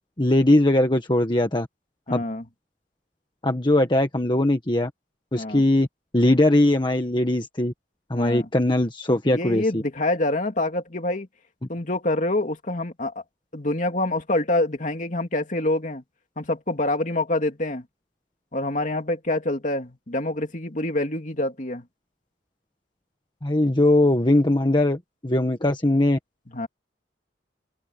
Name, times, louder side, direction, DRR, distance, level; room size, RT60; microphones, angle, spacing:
voice 1, 0.2-1.7 2.1-2.2 3.4-4.9 5.3-5.9 6.1-7.7 8.1-9.8 23.4-26.2, left 1 dB, 25° left, 1.5 m, -20 dB
voice 2, 2.1-2.4 5.3-5.6 8.1-8.5 9.3-11.3 11.7-13.2 13.5-16.0 16.4-17.9 18.5-21.8 26.5-26.7, left 2 dB, 45° left, 2.8 m, -26 dB
open air
head